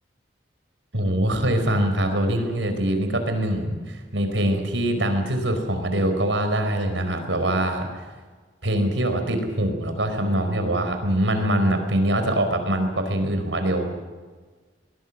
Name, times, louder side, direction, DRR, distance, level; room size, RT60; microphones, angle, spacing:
voice 1, 0.9-7.9 8.6-13.9, right 1 dB, 80° right, 7 dB, 4.7 m, -23 dB
23.0 x 20.0 x 7.5 m, 1.4 s
head